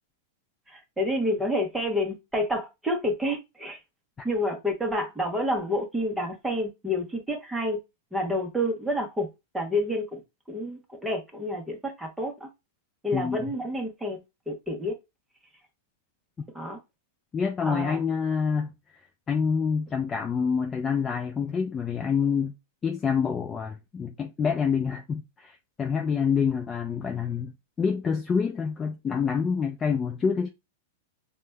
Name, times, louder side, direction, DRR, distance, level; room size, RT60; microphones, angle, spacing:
voice 1, 0.7-3.8 4.2-7.8 8.1-10.2 10.5-12.5 13.0-14.2 14.5-14.9 16.5-16.8 17.6-18.0, left 1 dB, 5° right, 0.9 m, -29 dB
voice 2, 17.3-18.7 19.3-22.5 22.8-27.5 27.8-30.5, left 6 dB, 20° left, 0.3 m, -27 dB
4.9 x 2.2 x 2.2 m
supercardioid pair, 145°, 0 cm